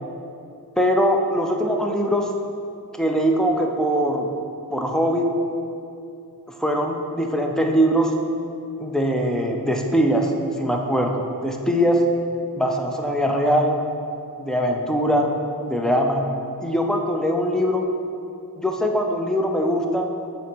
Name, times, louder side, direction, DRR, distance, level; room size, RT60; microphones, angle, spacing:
voice 1, 0.8-2.3 2.9-4.3 4.7-5.3 6.6-8.1 8.8-10.3 10.6-12.0 12.6-13.8 14.4-15.3 15.7-16.3 16.6-17.8 18.6-20.2, equal, ahead, 1 dB, 0.6 m, -21 dB
7.2 x 2.9 x 5.2 m, 2.6 s
wide cardioid pair, 50°, 40 cm